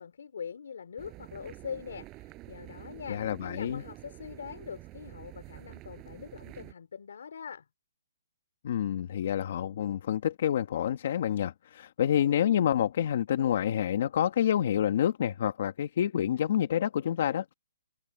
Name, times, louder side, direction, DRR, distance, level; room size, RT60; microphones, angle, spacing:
voice 1, 0.0-7.7, left 7 dB, 65° left, 2.9 m, -43 dB
sound 1, 1.0-6.7, right 19 dB, 15° right, 6.4 m, -48 dB
voice 2, 3.1-3.8 8.6-17.5, left 10 dB, 40° left, 1.5 m, -28 dB
hypercardioid pair, 170°, 0 cm